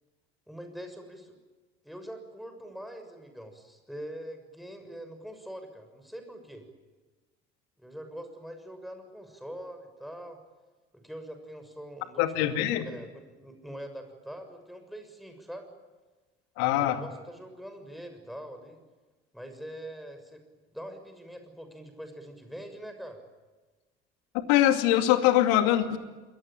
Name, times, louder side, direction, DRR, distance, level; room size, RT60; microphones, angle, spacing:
voice 1, 0.5-1.3 1.8-6.7 7.8-10.4 10.9-15.7 16.7-18.8 19.3-20.4 20.7-23.2, equal, ahead, 7 dB, 6.8 m, -43 dB
voice 2, 12.2-12.9 16.6-17.0 24.3-26.0, left 13 dB, 65° left, 8 dB, 2.5 m, -23 dB
28.5 x 22.0 x 9.0 m, 1.3 s
figure-of-eight pair, 60°, 32 cm